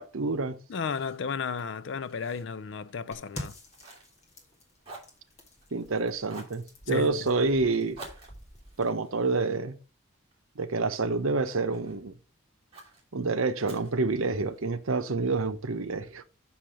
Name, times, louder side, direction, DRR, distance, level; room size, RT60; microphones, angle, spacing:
voice 1, 0.0-0.6 5.7-8.0 8.8-9.7 10.6-12.1 13.1-16.2, right 3 dB, 80° right, 0.8 m, -28 dB
voice 2, 0.7-3.6 6.9-7.3, left 5 dB, 60° left, 0.4 m, -34 dB
Fire, 0.8-4.5 4.8-5.9 6.3-6.6 7.9-10.4 10.9-12.0 12.7-13.0 13.6-14.7, right 3 dB, 25° right, 2.8 m, -50 dB
sound 1, 3.1-8.9, left 1 dB, 30° left, 2.0 m, -47 dB
6.3 x 6.0 x 4.9 m
head